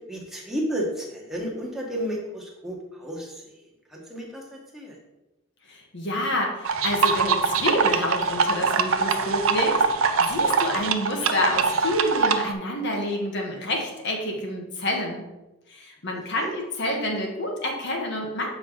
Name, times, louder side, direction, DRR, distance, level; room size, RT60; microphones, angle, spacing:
voice 1, 0.1-3.5 3.9-5.0 16.4-16.5, equal, ahead, -3 dB, 1.2 m, -32 dB
voice 2, 5.7-9.8 10.2-15.3 15.7-18.6, left 1 dB, 50° left, 1 dB, 1.2 m, -28 dB
sound 1, 6.6-12.5, right 5 dB, 65° right, 0.5 m, -23 dB
7.5 x 4.7 x 3.9 m, 1.0 s
head